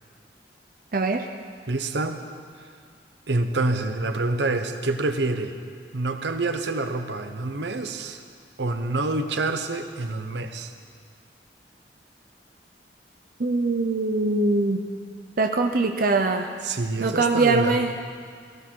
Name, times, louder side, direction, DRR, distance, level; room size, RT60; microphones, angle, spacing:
voice 1, 0.9-1.3 13.4-14.8 15.4-16.5 17.0-17.9, right 3 dB, 55° right, 4 dB, 0.7 m, -22 dB
voice 2, 1.7-2.2 3.3-5.5 5.9-8.2 8.6-10.7 16.6-17.8, right 2 dB, 80° right, 7 dB, 1.0 m, -27 dB
17.0 x 16.0 x 4.6 m, 2.1 s
head